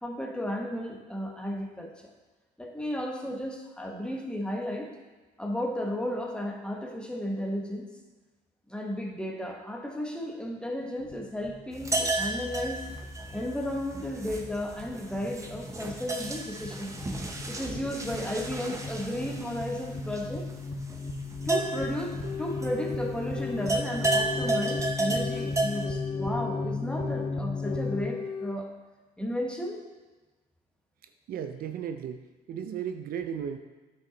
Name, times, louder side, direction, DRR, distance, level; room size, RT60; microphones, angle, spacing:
voice 1, 0.0-2.1 2.6-4.9 5.4-7.9 8.7-12.8 13.3-16.9 17.5-20.5 21.5-28.7 29.2-29.8, equal, 5° left, 1 dB, 1.2 m, -34 dB
sound 1, 11.0-28.0, left 3 dB, 35° left, 1.3 m, -36 dB
sound 2, 11.7-23.2 23.4-25.8, right 2 dB, 20° right, 0.9 m, -33 dB
sound 3, 21.6-21.9 22.2-23.7 24.0-25.5 25.8-27.3 27.6-28.6, left 6 dB, 65° left, 0.6 m, -37 dB
voice 2, 31.3-33.6, right 8 dB, 60° right, 8 dB, 0.5 m, -35 dB
9.1 x 5.8 x 4.0 m, 1.2 s
cardioid pair, 110°, 17 cm